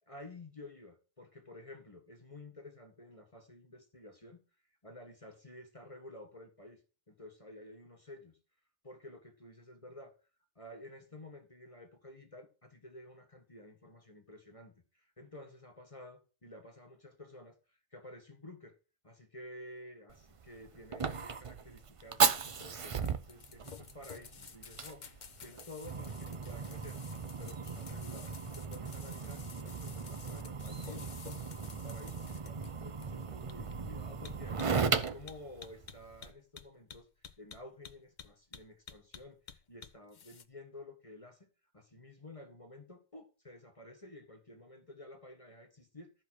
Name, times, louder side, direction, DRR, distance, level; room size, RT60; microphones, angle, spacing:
voice 1, 0.1-4.4 4.8-6.8 7.1-8.4 8.8-10.1 10.5-18.7 19.0-25.1 25.4-27.0 27.4-31.1 31.7-37.1 37.4-41.5 41.7-46.1, left 1 dB, 25° left, 4 dB, 1.5 m, -52 dB
Fire, 20.1-36.3, right 5 dB, 45° right, 0.4 m, -36 dB
sound 1, 23.0-40.4, left 6 dB, 40° left, 0.8 m, -52 dB
13.0 x 5.1 x 6.4 m, 0.35 s
omnidirectional pair, 1.4 m